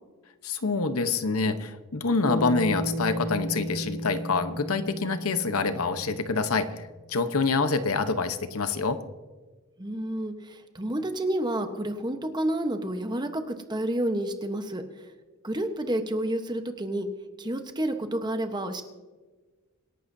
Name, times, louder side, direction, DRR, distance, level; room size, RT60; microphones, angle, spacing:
voice 1, 0.4-9.0, left 4 dB, 80° left, 10 dB, 1.0 m, -26 dB
Bass guitar, 2.3-6.7, equal, 25° left, 1.1 m, -34 dB
voice 2, 9.8-14.8 15.4-17.1 17.4-18.8, right 1 dB, 20° right, 7 dB, 1.0 m, -30 dB
26.0 x 11.5 x 2.7 m, 1.3 s
head